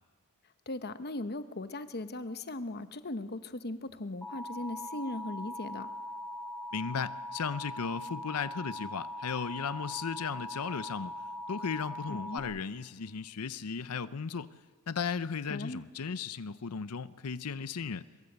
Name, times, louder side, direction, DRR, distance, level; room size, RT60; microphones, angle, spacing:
voice 1, 0.7-5.9 12.1-12.4 15.5-15.8, left 2 dB, 45° left, 11 dB, 1.1 m, -38 dB
Alarm, 4.2-12.4, left 1 dB, 10° left, 3.6 m, -41 dB
voice 2, 6.7-11.1 11.5-14.5 14.9-18.0, left 6 dB, 85° left, 15 dB, 0.6 m, -36 dB
23.0 x 22.5 x 8.1 m, 1.5 s
head